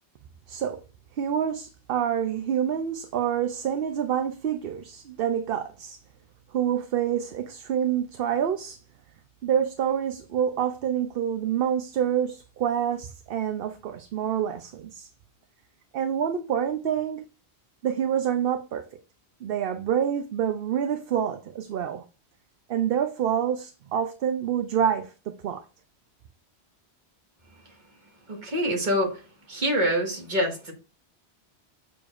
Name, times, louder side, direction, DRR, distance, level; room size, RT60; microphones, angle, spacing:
voice 1, 0.5-0.8 1.2-6.0 6.5-8.8 9.4-15.1 15.9-17.2 17.8-18.9 19.4-22.0 22.7-25.6, right 9 dB, 65° right, 0.8 m, -27 dB
voice 2, 28.3-29.2 29.5-30.7, equal, 45° right, 1.8 m, -25 dB
7.0 x 6.6 x 2.4 m
omnidirectional pair, 1.1 m